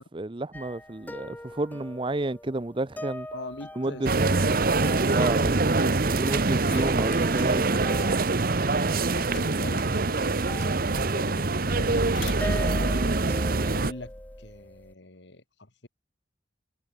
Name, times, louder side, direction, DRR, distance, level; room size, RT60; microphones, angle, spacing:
voice 1, 0.0-3.3 3.8-4.1 5.1-5.6 6.0-8.0 9.3-9.4, right 2 dB, 25° right, 0.7 m, -31 dB
sound 1, 0.5-5.8 6.9-7.0 7.2-10.0 10.4-11.4 11.7-14.9, left 1 dB, 10° left, 2.2 m, -42 dB
voice 2, 3.3-4.7 5.2-6.4 9.1-13.0 13.7-14.1 14.4-15.9, left 2 dB, 65° left, 2.2 m, -42 dB
sound 2, 4.0-13.9, right 3 dB, 50° right, 1.0 m, -24 dB
sound 3, 6.3-14.4, left 3 dB, 90° left, 1.9 m, -44 dB
head